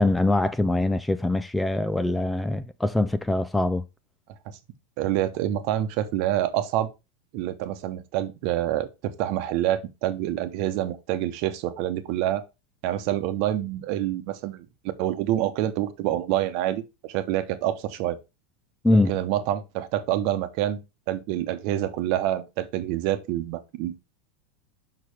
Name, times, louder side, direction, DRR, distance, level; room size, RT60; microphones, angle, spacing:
voice 1, 0.0-3.8 18.8-19.1, left 2 dB, 5° left, 0.4 m, -23 dB
voice 2, 5.0-6.9 7.3-12.4 12.8-14.7 15.0-16.8 17.1-18.2 18.9-20.8 21.1-24.0, right 12 dB, 50° right, 1.0 m, -27 dB
6.5 x 5.8 x 3.4 m
supercardioid pair, 155°, 0 cm